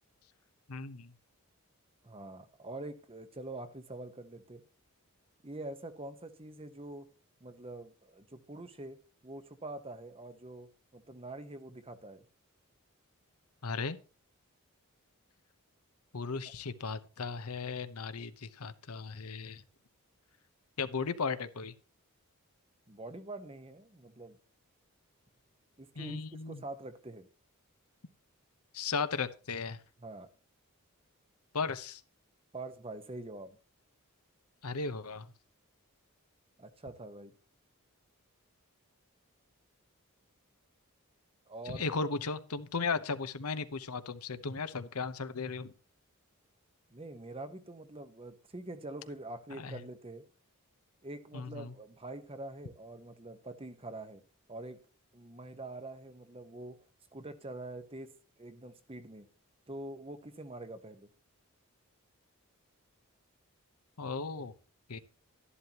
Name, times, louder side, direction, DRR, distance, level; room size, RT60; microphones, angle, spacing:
voice 1, 0.7-1.1 13.6-14.0 16.1-19.6 20.8-21.7 26.0-26.6 28.7-29.8 31.5-32.0 34.6-35.3 41.6-45.7 49.6-49.8 51.3-51.7 64.0-64.5 64.9-65.0, left 4 dB, 80° left, 0.9 m, -36 dB
voice 2, 2.0-4.6 5.4-7.1 7.4-9.0 9.2-12.2 22.9-24.4 25.8-26.2 26.5-27.3 30.0-30.3 32.5-33.6 36.6-37.3 41.5-41.9 46.9-50.2 51.0-54.2 54.5-54.8 55.1-56.8 57.1-58.1 58.4-59.3 59.7-61.1, right 2 dB, 25° right, 1.1 m, -45 dB
12.5 x 11.0 x 2.9 m
head